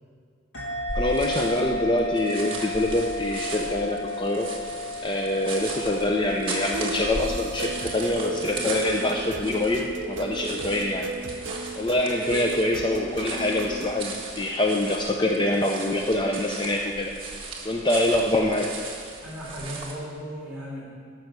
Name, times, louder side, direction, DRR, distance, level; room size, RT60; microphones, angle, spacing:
sound 1, 0.5-9.6, left 2 dB, 70° left, 1.8 m, -34 dB
voice 1, 0.9-4.5 5.0-11.1 11.8-17.1 17.6-18.7, left 1 dB, 25° left, 1 dB, 0.5 m, -25 dB
sound 2, 0.9-19.9, right 3 dB, 25° right, 1.5 m, -37 dB
sound 3, 6.5-13.9, right 3 dB, 70° right, 0.7 m, -35 dB
voice 2, 19.2-20.8, equal, 5° right, -8 dB, 3.6 m, -36 dB
13.0 x 6.3 x 6.7 m, 2.1 s
head